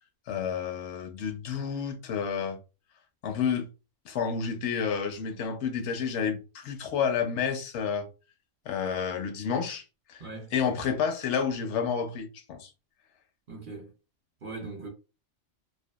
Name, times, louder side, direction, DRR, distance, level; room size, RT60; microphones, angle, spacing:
voice 1, 0.3-2.6 3.2-3.7 4.1-8.1 8.7-9.8 10.1-10.2 10.5-12.7, left 6 dB, 70° left, 0.9 m, -30 dB
voice 2, 10.2-10.5 13.5-13.9 14.4-14.9, right 3 dB, 50° right, 0.7 m, -40 dB
2.6 x 2.2 x 2.3 m
omnidirectional pair, 1.3 m